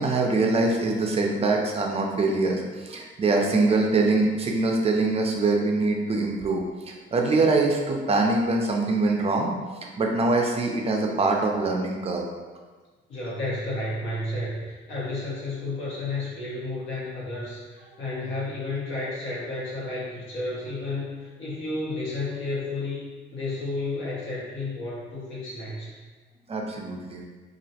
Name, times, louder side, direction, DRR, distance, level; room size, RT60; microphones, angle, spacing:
voice 1, 0.0-9.5 10.0-12.2 26.5-27.2, right 3 dB, 30° right, 1 dB, 0.4 m, -24 dB
voice 2, 13.1-23.0 23.3-25.9, left 2 dB, 75° left, -7 dB, 1.0 m, -32 dB
2.4 x 2.1 x 2.7 m, 1.3 s
cardioid pair, 90°, 20 cm